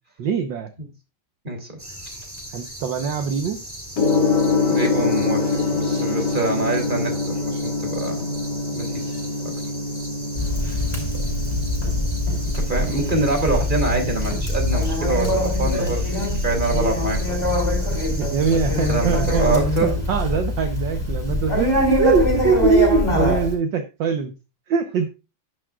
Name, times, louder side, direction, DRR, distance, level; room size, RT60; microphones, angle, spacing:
voice 1, 0.2-0.7 2.5-3.6 18.2-24.3 24.7-25.1, right 5 dB, 65° right, 7 dB, 1.6 m, -22 dB
voice 2, 1.4-1.8 4.7-8.4 8.7-9.1 12.4-17.6 18.9-19.9, right 3 dB, 20° right, 3 dB, 3.1 m, -25 dB
country morning late September, 1.8-19.6, right 1 dB, 5° right, 3.6 m, -38 dB
Gong, 3.9-23.0, left 3 dB, 55° left, 2.6 m, -27 dB
Conversation, 10.4-23.5, left 1 dB, 15° left, 5.0 m, -23 dB
11.5 x 10.5 x 2.4 m, 0.29 s
omnidirectional pair, 2.3 m